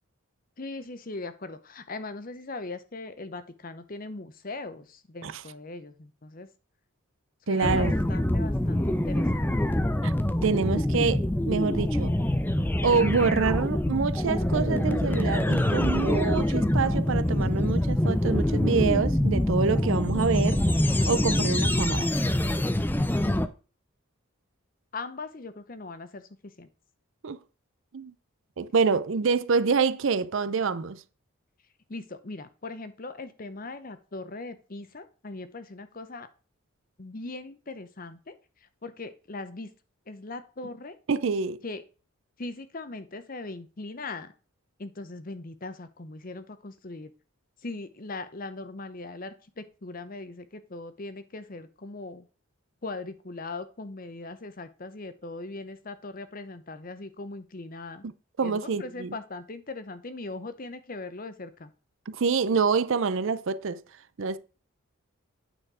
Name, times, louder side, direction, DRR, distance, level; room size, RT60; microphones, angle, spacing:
voice 1, 0.6-6.5 7.5-9.7 24.9-26.7 31.9-36.3 37.0-38.3 38.8-39.7 40.1-41.0 41.6-41.8 42.4-44.3 44.8-47.1 47.6-52.3 52.8-58.0 58.4-61.7, left 3 dB, 40° left, 0.8 m, -40 dB
voice 2, 7.5-8.0 10.0-10.1 10.4-12.1 12.8-20.6 20.9-22.1 27.2-27.4 27.9-28.1 28.6-31.0 41.1-41.6 58.4-59.1 62.1-63.8 64.2-64.4, right 5 dB, 65° right, 0.5 m, -26 dB
sound 1, 7.6-23.5, left 1 dB, 10° left, 0.4 m, -25 dB
9.1 x 4.3 x 4.8 m
head